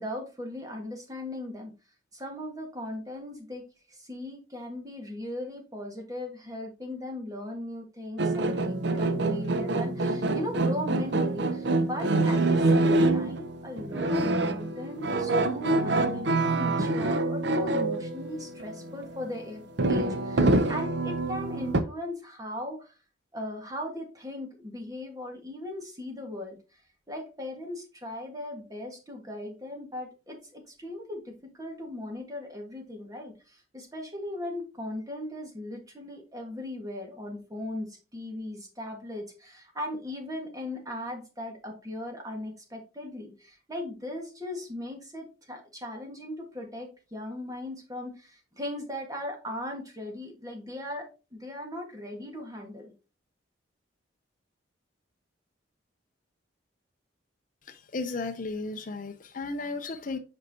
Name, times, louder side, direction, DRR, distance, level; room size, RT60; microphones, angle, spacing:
voice 1, 0.0-1.7 2.1-3.6 3.9-22.9 23.3-26.8 27.1-51.0 51.3-52.9, left 1 dB, 15° right, 1.6 m, -38 dB
sound 1, 8.2-19.4 19.8-21.8, right 2 dB, 60° right, 0.7 m, -26 dB
voice 2, 57.6-60.2, left 3 dB, 40° left, 0.5 m, -34 dB
7.7 x 5.5 x 2.8 m
head